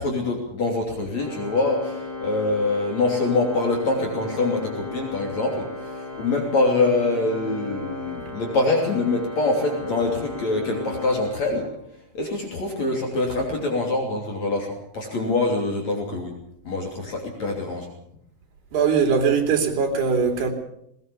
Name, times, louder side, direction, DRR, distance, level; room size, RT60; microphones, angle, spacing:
voice 1, 0.0-11.7 12.1-16.3 16.6-17.9, left 2 dB, 45° left, 1 dB, 4.1 m, -24 dB
Organ, 1.1-11.9, left 2 dB, 15° left, 7.8 m, -35 dB
voice 2, 18.7-20.5, right 6 dB, 85° right, 4 dB, 5.1 m, -21 dB
20.5 x 19.5 x 7.1 m, 0.76 s
omnidirectional pair, 4.5 m